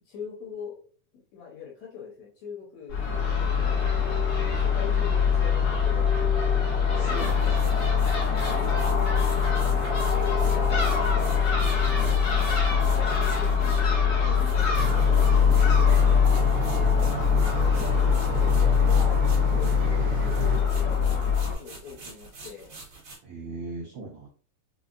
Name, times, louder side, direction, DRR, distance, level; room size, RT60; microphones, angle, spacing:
voice 1, 0.1-0.9 1.3-6.1 7.1-7.2 8.4-8.7 9.6-11.5 12.2-15.3 15.7-17.9 18.4-22.7, left 6 dB, 70° left, -2 dB, 1.9 m, -43 dB
Crow / Gull seagull, 2.9-21.5, left 6 dB, 85° left, 0.9 m, -23 dB
voice 2, 6.8-7.8 11.9-12.2 23.2-24.3, right 3 dB, 85° right, -2 dB, 1.2 m, -39 dB
sound 1, 7.1-20.0 20.2-23.2, right 3 dB, 55° right, 1.6 m, -46 dB
sound 2, 14.8-20.6, right 7 dB, 70° right, 2.0 m, -33 dB
5.2 x 2.2 x 2.4 m, 0.40 s
omnidirectional pair, 3.7 m